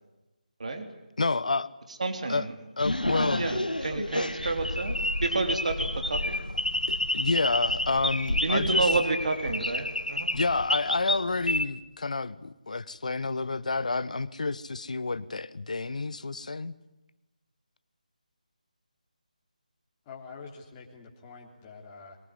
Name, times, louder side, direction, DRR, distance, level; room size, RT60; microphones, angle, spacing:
voice 1, 1.2-1.7 2.3-2.5 2.8-3.6 6.9-8.9 10.3-16.7, left 3 dB, 60° left, 17 dB, 1.1 m, -29 dB
voice 2, 2.0-2.5 3.1-6.4 8.4-10.3, right 3 dB, 55° right, 6 dB, 3.5 m, -30 dB
sound 1, 2.8-11.6, left 1 dB, 85° left, 1.7 m, -29 dB
voice 3, 20.1-22.2, left 5 dB, 20° left, -1 dB, 3.6 m, -46 dB
23.0 x 20.5 x 9.7 m, 1.0 s
figure-of-eight pair, 155°, 4 cm